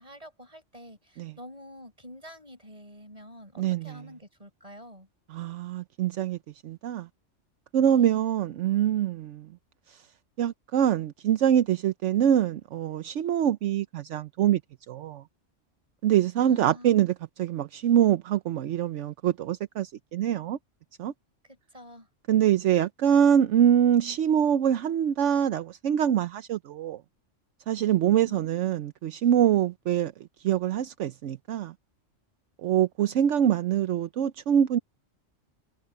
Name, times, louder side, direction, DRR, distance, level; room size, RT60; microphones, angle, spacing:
voice 1, 0.0-5.1 7.8-8.2 16.4-17.0 21.4-22.1 23.1-23.3 28.1-28.7, equal, 30° right, 6.1 m, -47 dB
voice 2, 3.6-4.0 5.3-6.4 6.6-7.1 7.7-9.6 9.9-10.1 10.4-14.6 14.9-15.2 16.0-20.6 21.0-21.1 22.3-27.0 27.7-31.7 32.6-34.8, right 10 dB, 75° right, 1.0 m, -24 dB
omnidirectional pair, 1.3 m